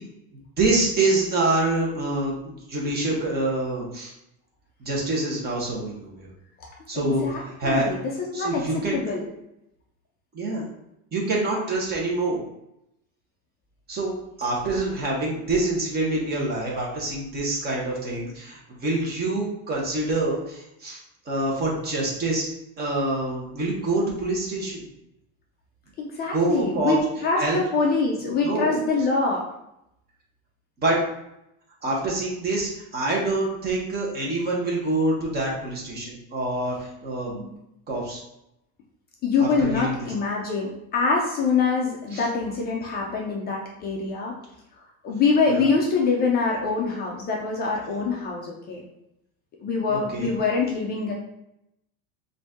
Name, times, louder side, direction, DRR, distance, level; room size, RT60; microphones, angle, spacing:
voice 1, 0.6-4.1 4.8-6.3 6.9-7.2 7.6-8.0 8.3-9.0 10.3-10.7 11.1-12.4 13.9-14.1 14.4-22.5 22.8-24.8 26.3-27.0 27.4-27.6 28.3-28.8 30.8-31.0 31.8-37.3 37.9-38.2 39.4-40.1 42.1-42.3 45.5-45.7 49.9-50.3, right 2 dB, 25° right, -3 dB, 1.0 m, -26 dB
voice 2, 6.9-9.2 26.0-29.4 37.3-37.5 39.2-44.4 45.0-48.8 49.6-51.1, left 4 dB, 25° left, -1 dB, 0.3 m, -25 dB
4.0 x 2.6 x 3.5 m, 0.84 s
supercardioid pair, 145°, 43 cm